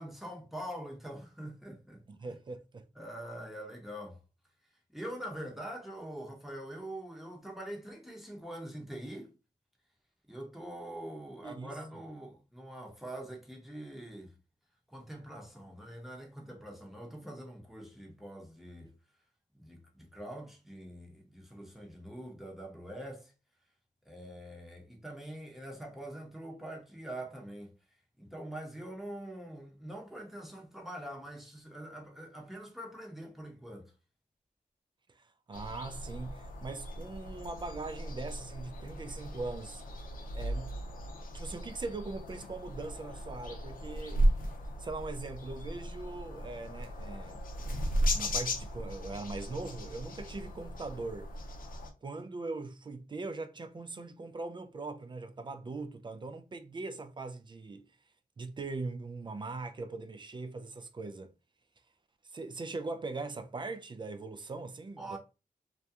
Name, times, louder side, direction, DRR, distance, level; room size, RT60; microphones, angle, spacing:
voice 1, 0.0-2.4 2.9-4.2 4.9-9.3 10.3-14.3 14.9-18.9 19.5-23.3 24.0-27.7 28.2-33.9 65.0-65.2, right 1 dB, ahead, 0.8 m, -44 dB
voice 2, 2.1-2.8 11.4-11.7 35.1-39.8 40.3-40.7 41.3-44.3 44.8-47.4 48.1-51.3 52.0-57.8 58.4-61.3 62.3-65.2, right 3 dB, 30° right, 0.3 m, -41 dB
sound 1, 35.5-51.9, equal, 70° left, 0.6 m, -36 dB
2.3 x 2.2 x 2.7 m
cardioid pair, 75°, 15 cm